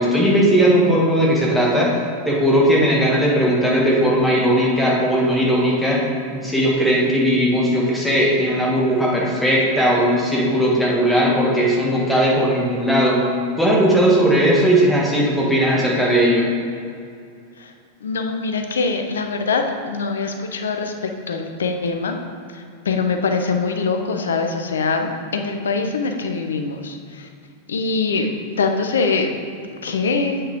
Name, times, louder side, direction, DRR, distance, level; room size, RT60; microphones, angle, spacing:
voice 1, 0.0-1.9 2.3-6.0 6.3-13.2 13.6-16.5, equal, 5° left, -5 dB, 1.7 m, -17 dB
voice 2, 18.0-22.2 22.5-27.3 27.7-28.3 28.6-29.3 29.8-30.4, left 4 dB, 65° left, 5 dB, 0.7 m, -23 dB
7.8 x 5.5 x 3.6 m, 2.3 s
figure-of-eight pair, 90°, 0 cm